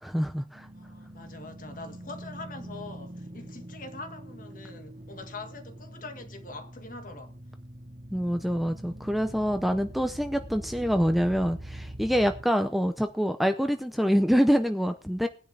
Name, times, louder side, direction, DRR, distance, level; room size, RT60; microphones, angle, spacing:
voice 1, 0.0-0.7 8.1-15.3, equal, ahead, 0.6 m, -26 dB
sound 1, 0.5-12.4, right 1 dB, 40° right, 1.0 m, -44 dB
voice 2, 0.7-7.3 12.7-12.9, left 3 dB, 45° left, 1.8 m, -43 dB
19.0 x 10.0 x 3.4 m
head